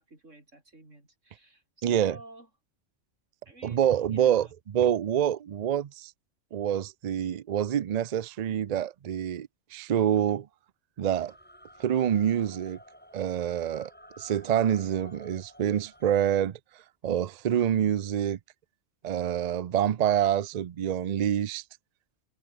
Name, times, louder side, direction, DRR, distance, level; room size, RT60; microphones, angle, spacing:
voice 1, 0.0-2.5 3.5-4.5, right 2 dB, 80° right, 6.4 m, -51 dB
voice 2, 1.8-2.2 3.6-4.5 4.7-6.1 6.5-10.5 11.0-11.3 11.8-12.8 13.1-13.9 14.2-16.6 17.0-18.4 19.0-21.6, right 9 dB, 55° right, 0.4 m, -26 dB
sound 1, 11.3-16.3, equal, 10° left, 4.7 m, -52 dB
omnidirectional pair, 1.3 m